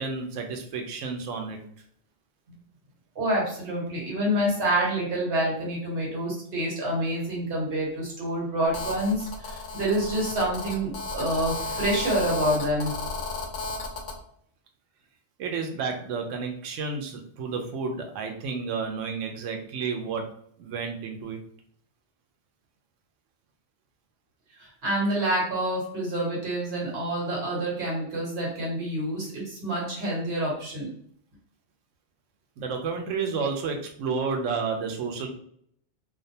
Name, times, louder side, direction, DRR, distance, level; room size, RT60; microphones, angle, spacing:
voice 1, 0.0-1.6 15.4-20.3 20.6-21.4 32.6-35.3, right 5 dB, 80° right, 4 dB, 0.9 m, -31 dB
voice 2, 3.1-13.0 24.6-30.9, right 1 dB, 55° right, -4 dB, 1.2 m, -27 dB
Telephone, 8.7-14.2, left 3 dB, 85° left, 1.0 m, -34 dB
2.5 x 2.2 x 2.7 m, 0.65 s
omnidirectional pair, 1.3 m